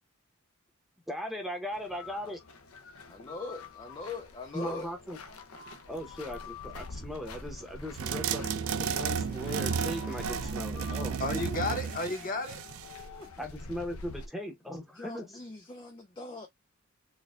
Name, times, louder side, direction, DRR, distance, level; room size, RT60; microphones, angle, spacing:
voice 1, 1.1-2.4 4.5-5.2 5.9-11.2 13.4-15.3, equal, ahead, 0.8 m, -38 dB
sound 1, 1.7-14.3, left 3 dB, 75° left, 0.6 m, -46 dB
voice 2, 3.1-4.9 11.2-11.6 12.8-13.4 14.9-16.5, left 3 dB, 20° left, 0.4 m, -41 dB
sound 2, 8.0-13.0, right 6 dB, 70° right, 0.4 m, -33 dB
voice 3, 11.2-12.6, left 2 dB, 40° left, 0.8 m, -32 dB
4.3 x 2.2 x 2.4 m
head